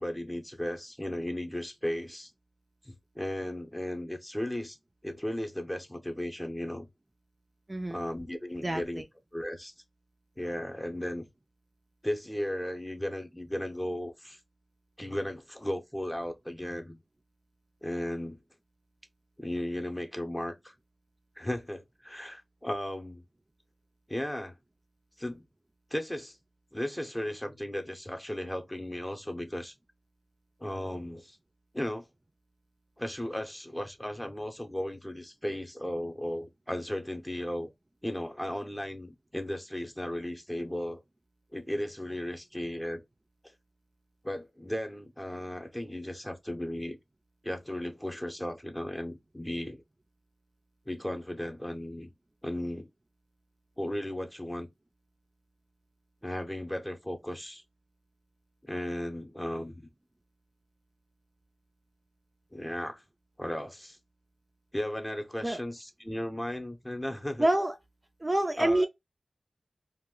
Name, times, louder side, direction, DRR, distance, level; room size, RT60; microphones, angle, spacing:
voice 1, 0.0-2.3 2.8-4.8 5.0-6.9 7.9-9.0 9.3-9.7 10.4-11.3 12.0-14.4 15.0-17.0 17.8-18.4 19.4-20.7 21.4-23.2 24.1-24.6 25.2-25.4 25.9-26.4 26.7-29.7 30.6-31.4 31.7-32.1 33.0-37.7 38.0-41.0 41.5-43.0 44.2-47.0 47.4-49.8 50.9-52.1 52.4-52.9 53.8-54.7 56.2-57.6 58.6-59.9 62.5-63.0 63.4-64.0 64.7-67.5 68.6-68.9, left 1 dB, 10° left, 0.7 m, -35 dB
voice 2, 7.7-8.0 8.6-9.0 65.4-65.6 67.4-67.7 68.2-68.9, right 1 dB, 30° right, 0.4 m, -27 dB
2.3 x 2.1 x 3.6 m
wide cardioid pair, 55°, 0 cm